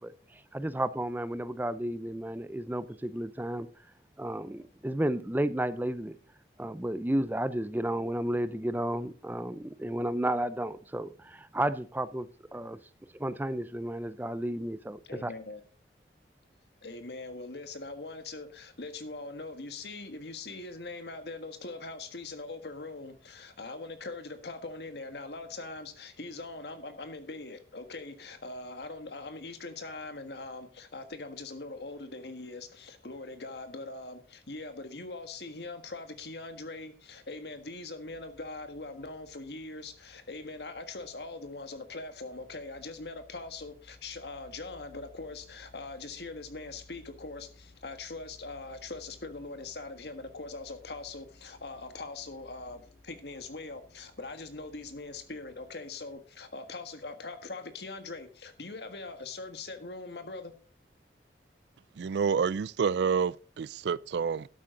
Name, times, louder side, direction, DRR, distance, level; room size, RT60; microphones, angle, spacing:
voice 1, 0.0-3.7 4.2-6.2 6.6-12.8 13.1-15.3, right 1 dB, 10° right, 0.5 m, -32 dB
voice 2, 15.0-15.6 16.8-60.5, left 3 dB, 70° left, 1.5 m, -42 dB
sound 1, 38.0-55.8, left 2 dB, 45° left, 2.2 m, -59 dB
voice 3, 62.0-64.5, right 6 dB, 75° right, 0.4 m, -28 dB
12.0 x 8.7 x 3.8 m
head